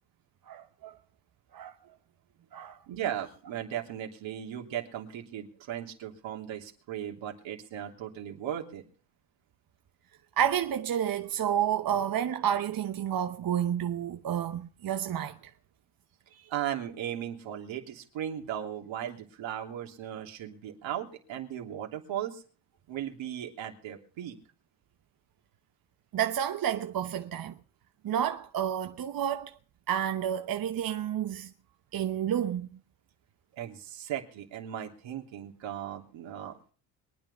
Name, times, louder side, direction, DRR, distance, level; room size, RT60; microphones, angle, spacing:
voice 1, 0.5-0.9 1.5-1.7 2.5-2.8 10.4-15.4 26.1-27.6 28.0-29.5 29.9-31.5 31.9-32.7, right 9 dB, 45° right, 1.0 m, -30 dB
voice 2, 2.9-8.8 16.5-22.4 22.9-24.4 33.6-36.6, right 10 dB, 70° right, 3.2 m, -37 dB
23.0 x 9.5 x 5.5 m
supercardioid pair, 70°, 47 cm